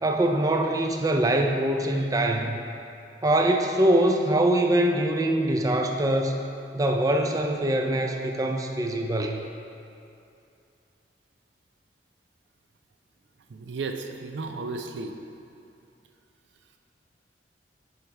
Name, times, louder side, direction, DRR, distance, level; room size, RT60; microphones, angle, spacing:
voice 1, 0.0-2.6 3.2-6.4 6.7-9.4, right 1 dB, 20° right, 3 dB, 0.3 m, -23 dB
voice 2, 13.5-15.1, right 3 dB, 90° right, 5 dB, 0.5 m, -34 dB
8.7 x 3.3 x 4.6 m, 2.6 s
head